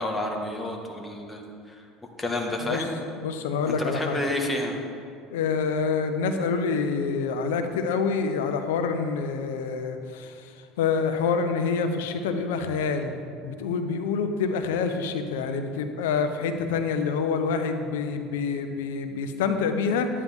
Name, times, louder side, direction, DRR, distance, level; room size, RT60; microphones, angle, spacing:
voice 1, 0.0-1.8 2.2-2.9 3.7-4.8, left 1 dB, 10° left, 1 dB, 1.7 m, -30 dB
voice 2, 3.2-4.2 5.3-10.3 10.8-13.2 13.4-20.1, left 5 dB, 85° left, 7 dB, 0.9 m, -27 dB
12.5 x 9.7 x 3.7 m, 2.3 s
supercardioid pair, 90°, 0 cm